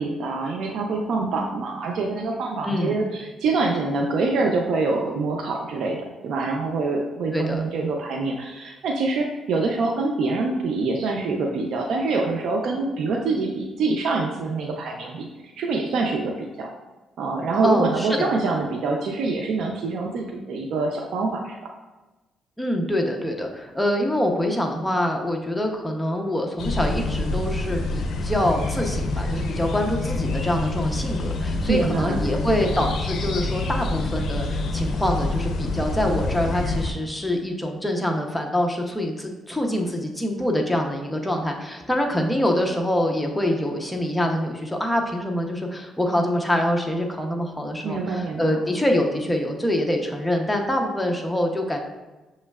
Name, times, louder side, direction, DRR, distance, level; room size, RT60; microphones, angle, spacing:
voice 1, 0.0-6.0 6.2-15.3 15.6-16.7 17.2-21.6 31.7-32.3 47.8-48.6, right 3 dB, 70° right, 1 dB, 0.4 m, -25 dB
voice 2, 2.6-3.0 7.3-7.6 17.6-18.3 22.6-51.8, left 1 dB, 5° left, 2 dB, 0.7 m, -25 dB
sound 1, 26.6-36.9, left 2 dB, 65° left, 0.5 m, -27 dB
6.3 x 3.1 x 2.3 m, 1.1 s
cardioid pair, 90°, 0 cm